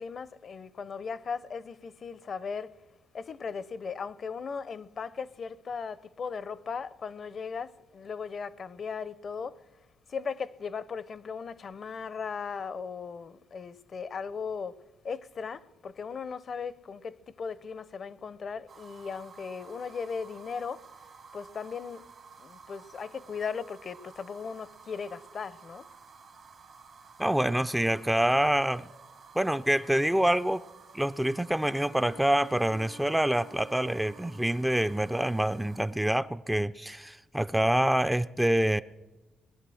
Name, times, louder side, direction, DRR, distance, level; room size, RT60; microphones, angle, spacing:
voice 1, 0.0-2.8 3.1-9.6 10.1-14.8 15.0-20.9 21.3-22.0 22.4-25.9, left 5 dB, 50° left, 0.6 m, -37 dB
sound 1, 18.7-36.0, right 5 dB, 50° right, 1.1 m, -53 dB
voice 2, 27.2-28.9 29.3-30.6 30.9-38.8, right 1 dB, 5° right, 0.4 m, -26 dB
Bowed string instrument, 31.6-36.3, equal, 80° left, 1.1 m, -54 dB
20.5 x 11.0 x 6.2 m
cardioid pair, 90°, 0 cm